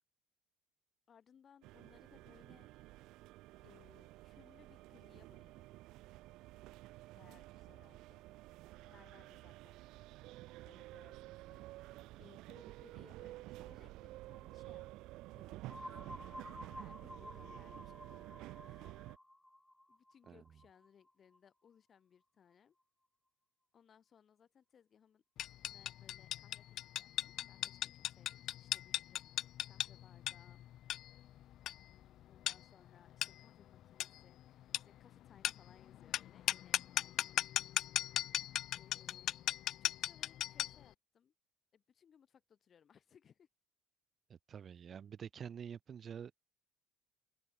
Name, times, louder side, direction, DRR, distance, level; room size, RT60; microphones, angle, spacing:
voice 1, 1.1-2.7 3.6-5.7 7.1-8.2 8.8-9.8 10.4-14.9 15.3-15.9 16.8-17.9 18.6-19.0 19.9-22.8 23.7-30.6 32.3-37.4 38.7-39.4 39.8-41.3 41.7-43.5, left 8 dB, 35° left, 7.4 m, -66 dB
sound 1, 1.6-19.2, right 18 dB, 70° right, 0.9 m, -52 dB
sound 2, 15.7-21.4, left 1 dB, 5° left, 1.0 m, -52 dB
sound 3, 25.4-40.9, left 13 dB, 55° left, 0.4 m, -39 dB
voice 2, 44.3-46.5, right 8 dB, 35° right, 0.6 m, -48 dB
open air
cardioid pair, 115°, 0 cm